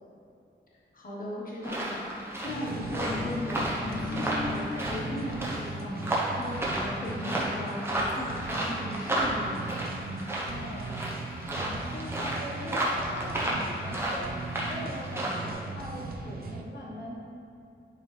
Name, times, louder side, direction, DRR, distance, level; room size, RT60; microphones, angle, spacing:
voice 1, 0.9-9.7, left 1 dB, 45° left, -5 dB, 1.3 m, -37 dB
sound 1, 1.6-15.5, right 1 dB, 10° right, 0.9 m, -33 dB
sound 2, 2.5-16.6, right 3 dB, 50° right, 0.5 m, -39 dB
sound 3, 3.1-9.0, left 3 dB, 25° left, 0.3 m, -40 dB
voice 2, 10.4-11.0 11.5-14.4 14.6-17.2, left 1 dB, 70° left, -6 dB, 1.1 m, -41 dB
10.5 x 4.0 x 3.3 m, 2.6 s
wide cardioid pair, 160°, 19 cm